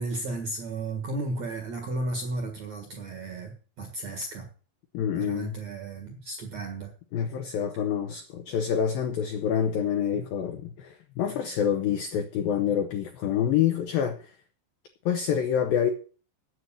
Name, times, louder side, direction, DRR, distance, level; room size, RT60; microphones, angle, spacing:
voice 1, 0.0-4.5 5.1-6.9, right 2 dB, 60° right, 1.9 m, -34 dB
voice 2, 4.9-5.6 7.1-14.4 15.1-15.9, left 8 dB, 85° left, 2.0 m, -27 dB
9.7 x 7.9 x 7.4 m
omnidirectional pair, 5.5 m